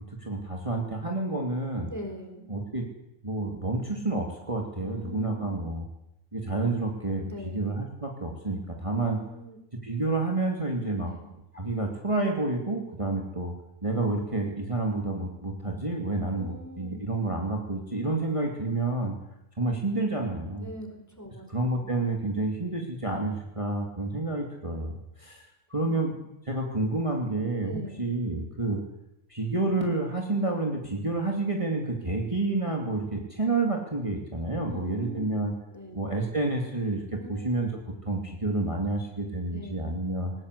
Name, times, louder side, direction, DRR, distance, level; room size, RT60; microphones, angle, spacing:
voice 1, 0.2-1.9 2.5-2.9 3.2-5.9 6.3-9.2 9.8-11.1 11.5-13.5 13.8-19.1 19.6-20.7 21.5-24.9 25.2-26.1 26.5-28.8 29.3-35.5 35.9-37.7 38.0-40.3, right 2 dB, 25° right, 1 dB, 2.8 m, -29 dB
voice 2, 1.9-2.5 4.8-5.7 7.2-7.7 8.9-9.6 11.0-11.3 16.3-17.0 20.6-20.9 21.2-21.9 25.9-26.2 27.6-28.0 34.6-35.4 35.7-36.0 37.2-37.4 39.5-39.9, left 1 dB, 10° left, 4 dB, 4.4 m, -42 dB
20.5 x 20.0 x 8.2 m, 0.84 s
omnidirectional pair, 1.4 m